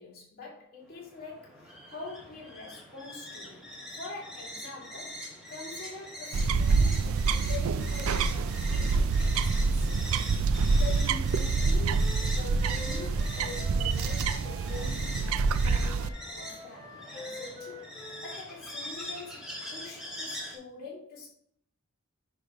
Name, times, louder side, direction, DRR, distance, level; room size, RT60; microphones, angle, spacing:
voice 1, 0.0-3.7 4.0-9.9 10.7-15.0 15.6-17.8 18.2-21.3, left 3 dB, 45° left, 2.8 m, -44 dB
sound 1, 0.8-20.6, equal, ahead, 1.6 m, -42 dB
sound 2, 6.3-16.1, right 4 dB, 70° right, 0.4 m, -26 dB
Wind instrument woodwind instrument, 11.9-14.9 15.2-18.4, left 2 dB, 15° left, 1.7 m, -47 dB
10.0 x 3.4 x 4.9 m
head